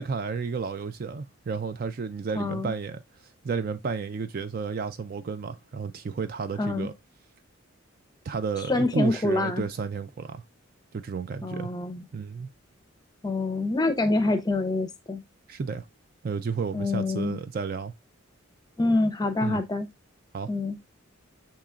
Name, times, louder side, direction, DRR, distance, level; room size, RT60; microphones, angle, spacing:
voice 1, 0.0-3.0 3.4-6.9 8.3-10.4 10.9-11.7 12.1-12.5 15.5-15.8 16.2-17.9 19.4-19.6 20.3-20.5, right 5 dB, 45° right, 0.3 m, -32 dB
voice 2, 2.3-2.7 6.6-6.9 8.7-9.7 11.4-12.0 13.2-15.2 16.7-17.4 18.8-19.9 20.5-20.8, left 2 dB, 20° left, 0.5 m, -26 dB
6.8 x 2.9 x 2.4 m
head